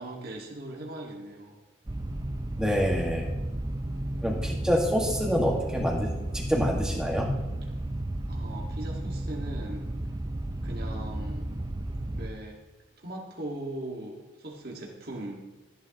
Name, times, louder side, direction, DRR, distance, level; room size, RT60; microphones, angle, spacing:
voice 1, 0.0-1.6 8.3-9.8 10.6-11.5 12.2-12.6 13.0-15.4, right 1 dB, 50° right, -2 dB, 1.8 m, -39 dB
sound 1, 1.9-12.3, right 1 dB, 20° right, 0.5 m, -33 dB
voice 2, 2.6-3.3 4.2-7.3, equal, 5° right, -1 dB, 1.7 m, -26 dB
14.0 x 11.5 x 3.0 m, 1.1 s
head